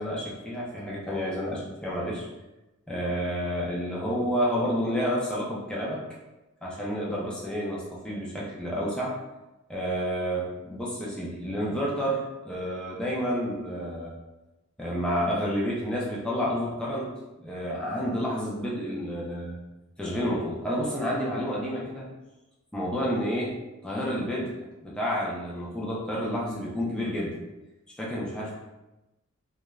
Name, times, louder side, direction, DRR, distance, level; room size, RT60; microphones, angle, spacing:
voice 1, 0.0-2.3 2.9-6.0 6.6-9.2 9.7-14.1 14.8-17.1 17.4-19.6 20.0-22.0 22.7-24.5 24.8-27.3 28.0-28.6, equal, 5° left, -6 dB, 0.4 m, -30 dB
2.3 x 2.1 x 3.0 m, 1.0 s
head